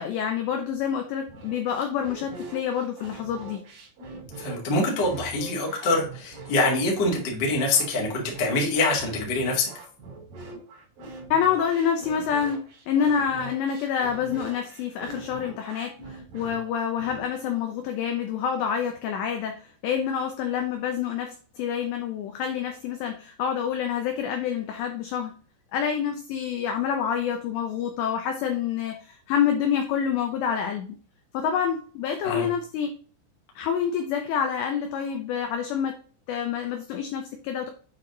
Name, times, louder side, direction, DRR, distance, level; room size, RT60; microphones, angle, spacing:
voice 1, 0.0-3.6 11.3-25.3 25.7-31.0 31.3-33.0 33.6-36.0 36.3-37.7, left 8 dB, 80° left, 5 dB, 2.5 m, -27 dB
sound 1, 1.3-17.2, right 2 dB, 45° right, 4.0 m, -42 dB
voice 2, 4.4-9.7 32.2-32.4, left 2 dB, 45° left, -1 dB, 1.5 m, -25 dB
8.6 x 3.8 x 3.8 m, 0.42 s
omnidirectional pair, 5.9 m